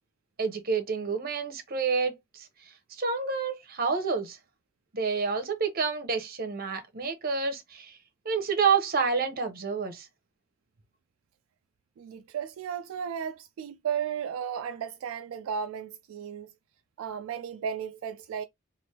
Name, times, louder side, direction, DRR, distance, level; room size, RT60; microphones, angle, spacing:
voice 1, 0.4-2.1 3.0-4.4 4.9-8.0 8.2-10.1, right 5 dB, 45° right, 0.8 m, -28 dB
voice 2, 12.0-16.5 17.0-18.4, right 7 dB, 80° right, 0.3 m, -34 dB
3.3 x 2.6 x 2.8 m
head